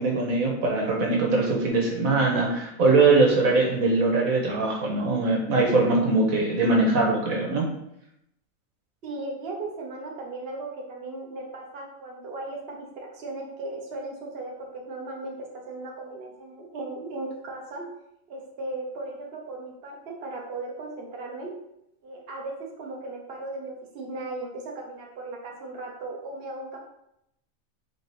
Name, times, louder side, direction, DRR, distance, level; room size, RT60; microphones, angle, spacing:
voice 1, 0.0-7.7, right 3 dB, 85° right, -1 dB, 1.5 m, -22 dB
voice 2, 9.0-17.9 18.3-21.5 22.0-26.8, right 2 dB, 50° right, 0 dB, 1.1 m, -37 dB
4.2 x 3.8 x 3.3 m, 0.79 s
omnidirectional pair, 1.4 m